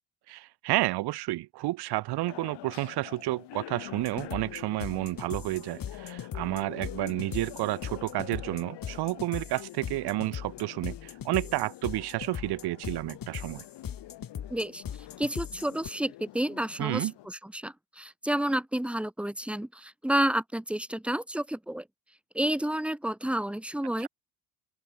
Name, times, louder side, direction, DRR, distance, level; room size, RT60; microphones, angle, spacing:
voice 1, 0.3-13.6 16.8-17.1 24.0-24.1, right 17 dB, 55° right, 0.7 m, -31 dB
sound 1, 2.2-17.3, left 15 dB, 60° left, 1.3 m, -46 dB
sound 2, 4.0-15.9, left 8 dB, 45° left, 4.2 m, -39 dB
voice 2, 14.5-14.8 15.2-21.9 22.3-24.1, right 1 dB, 5° right, 0.7 m, -30 dB
open air
supercardioid pair, 80°, 47 cm